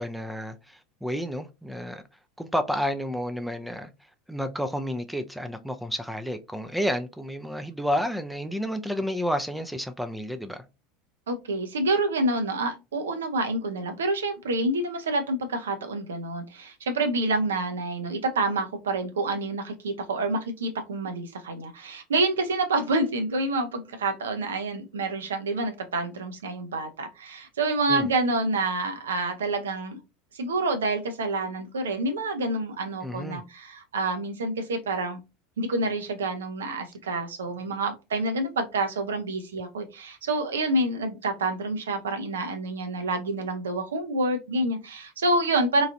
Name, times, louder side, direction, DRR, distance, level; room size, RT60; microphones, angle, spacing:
voice 1, 0.0-2.0 2.4-3.9 4.3-10.6 27.9-28.1 33.0-33.4, equal, ahead, 0.4 m, -30 dB
voice 2, 11.3-30.0 30.3-35.2 35.6-45.9, right 2 dB, 75° right, 0.6 m, -28 dB
3.1 x 2.4 x 2.6 m
figure-of-eight pair, 75°, 0 cm